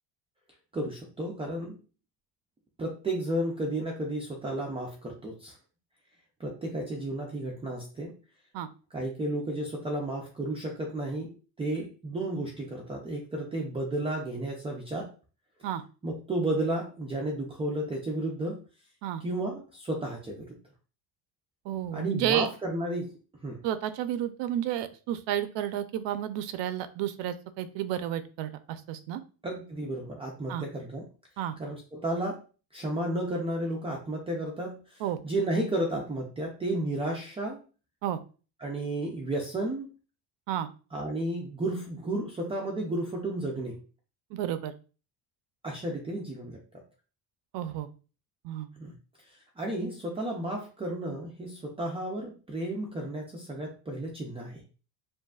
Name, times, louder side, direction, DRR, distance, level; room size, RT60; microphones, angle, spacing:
voice 1, 0.7-1.8 2.8-5.6 6.4-8.1 8.9-15.1 16.0-18.6 19.2-20.6 21.9-23.1 23.4-23.6 29.4-31.1 31.6-32.4 32.7-37.6 38.6-39.9 40.9-43.8 45.6-46.6 48.8-48.9 49.6-54.6, right 1 dB, 15° right, -1 dB, 0.4 m, -32 dB
voice 2, 21.7-22.5 23.6-29.2 30.5-30.6 31.4-31.5 35.0-35.2 38.0-38.2 40.5-40.7 44.3-44.7 47.5-47.9 48.4-48.7, right 11 dB, 70° right, 11 dB, 0.6 m, -31 dB
7.4 x 2.5 x 2.3 m, 0.36 s
cardioid pair, 175°, 45 cm